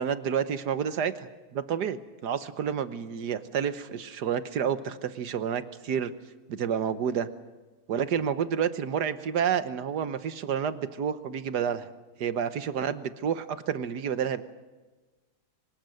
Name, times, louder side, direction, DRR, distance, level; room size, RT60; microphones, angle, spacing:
voice 1, 0.0-6.1 6.5-7.3 7.9-11.9 12.2-14.4, right 8 dB, 55° right, 12 dB, 1.4 m, -29 dB
24.5 x 19.5 x 7.9 m, 1.2 s
omnidirectional pair, 2.4 m